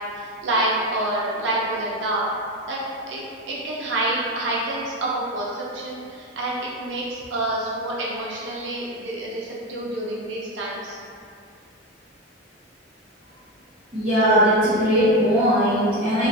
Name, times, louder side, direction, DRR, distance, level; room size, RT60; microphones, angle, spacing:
voice 1, 0.2-2.3 2.7-2.8 3.1-3.2 3.5-11.0, right 1 dB, 90° right, -5 dB, 0.6 m, -27 dB
voice 2, 13.9-16.3, equal, 30° right, -16 dB, 0.7 m, -19 dB
2.4 x 2.3 x 2.5 m, 2.3 s
head